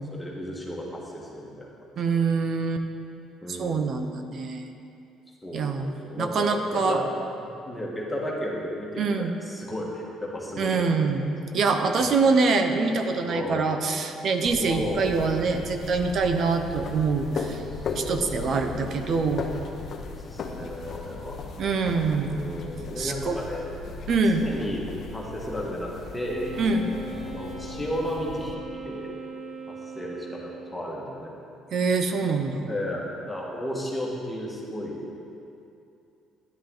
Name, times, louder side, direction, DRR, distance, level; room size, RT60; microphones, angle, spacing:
voice 1, 0.1-2.2 3.4-4.1 5.4-7.0 7.4-12.1 13.3-13.7 14.6-15.2 17.6-18.9 20.1-21.4 22.1-23.7 24.3-26.5 27.2-29.1 29.7-31.3 32.2-32.3 32.6-35.0, equal, 5° left, -4 dB, 1.6 m, -34 dB
voice 2, 2.0-2.8 3.5-4.7 5.5-7.0 9.0-9.4 10.6-17.6 18.0-19.5 21.6-22.7 23.0-23.4 24.1-24.4 26.6-26.9 31.7-32.7, right 4 dB, 45° right, 6 dB, 0.9 m, -25 dB
sound 1, 14.5-28.5, left 4 dB, 45° left, 0.9 m, -37 dB
Wind instrument woodwind instrument, 26.3-30.9, right 3 dB, 20° right, 1.2 m, -40 dB
13.0 x 10.5 x 3.9 m, 2.6 s
cardioid pair, 145°, 0 cm